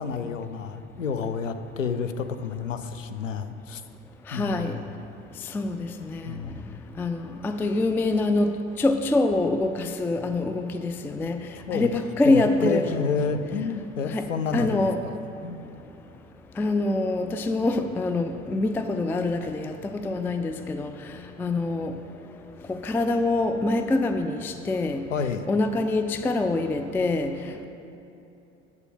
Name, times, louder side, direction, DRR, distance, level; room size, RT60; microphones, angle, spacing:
voice 1, 0.0-3.8 4.3-4.8 6.3-6.8 11.7-12.0 12.2-15.2 15.4-15.6 25.1-25.4, left 5 dB, 90° left, 9 dB, 0.6 m, -30 dB
voice 2, 4.3-4.7 5.5-6.2 7.0-8.5 8.8-11.4 11.7-12.8 14.1-14.2 14.5-15.0 16.6-20.9 21.4-21.9 22.7-25.0 25.5-27.3, left 2 dB, 5° left, 8 dB, 0.3 m, -25 dB
8.1 x 7.0 x 7.1 m, 2.9 s
figure-of-eight pair, 65°, 37 cm